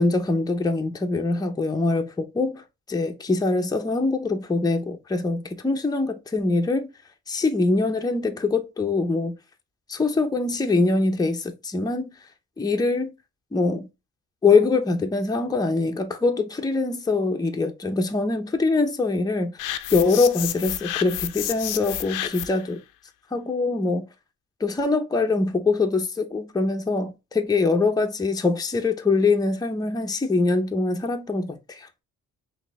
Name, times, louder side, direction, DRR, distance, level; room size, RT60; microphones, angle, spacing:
voice 1, 0.0-2.6 2.9-6.9 7.3-9.4 9.9-12.1 12.6-13.1 13.5-13.9 14.4-19.5 19.9-22.8 23.3-24.0 24.6-31.9, left 3 dB, 15° left, 0.7 m, -23 dB
sound 1, 19.6-22.7, left 13 dB, 85° left, 0.5 m, -30 dB
3.8 x 2.7 x 3.1 m
cardioid pair, 90°, 30 cm